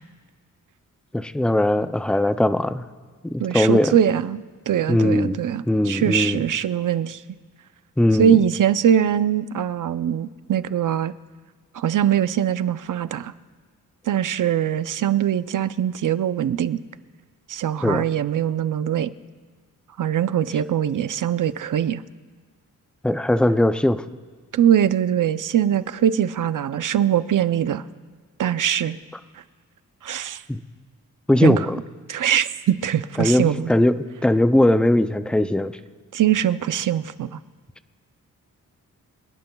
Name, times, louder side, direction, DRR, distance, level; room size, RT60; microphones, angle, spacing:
voice 1, 1.1-2.9 3.2-4.0 4.9-5.4 5.7-6.4 8.0-8.4 17.8-18.0 23.0-24.0 30.5-30.6 31.3-31.8 33.2-34.0 34.2-35.8, left 1 dB, 5° left, 11 dB, 0.4 m, -19 dB
voice 2, 3.4-7.2 8.2-11.1 11.7-13.3 14.1-16.8 17.5-19.1 20.0-22.0 24.5-27.8 28.4-29.0 30.0-30.4 31.4-31.7 32.1-33.7 36.1-37.4, right 10 dB, 65° right, 13 dB, 0.6 m, -22 dB
27.0 x 18.5 x 2.3 m, 1.5 s
wide cardioid pair, 145°, 33 cm